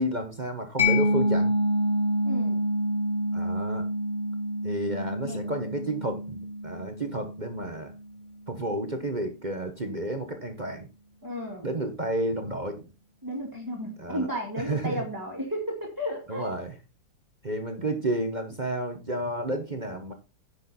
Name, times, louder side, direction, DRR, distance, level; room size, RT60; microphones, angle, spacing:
voice 1, 0.0-1.5 3.3-3.8 4.6-7.9 8.5-10.9 11.6-12.9 14.0-14.3 14.6-15.0 16.3-16.7 17.4-20.1, right 1 dB, 35° right, 5 dB, 0.8 m, -31 dB
Mallet percussion, 0.8-8.2, equal, 30° left, 2.1 m, -27 dB
voice 2, 2.2-2.7 5.2-5.5 11.2-11.7 13.2-16.5, equal, 10° right, -1 dB, 2.0 m, -33 dB
10.0 x 6.8 x 4.2 m, 0.31 s
omnidirectional pair, 2.4 m